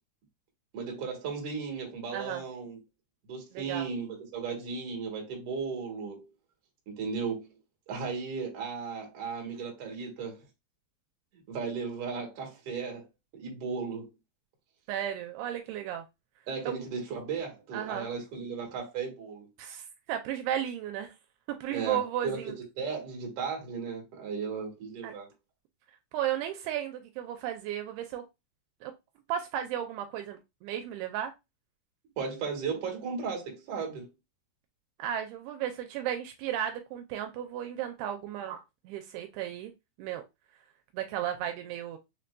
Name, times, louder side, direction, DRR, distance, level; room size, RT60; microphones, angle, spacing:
voice 1, 0.7-2.8 3.3-6.3 6.9-7.5 7.9-10.4 11.3-13.1 13.3-14.1 16.5-19.5 21.7-25.3 32.2-34.1, right 5 dB, 55° right, 1.8 m, -36 dB
voice 2, 2.1-2.5 3.5-3.9 14.9-16.1 16.7-16.8 17.7-18.1 19.6-21.1 21.6-22.5 25.0-25.1 26.1-28.3 28.8-28.9 29.3-31.3 35.0-39.7 40.0-40.2 40.9-42.0, right 10 dB, 80° right, 2.5 m, -34 dB
6.4 x 2.6 x 2.2 m
omnidirectional pair, 4.7 m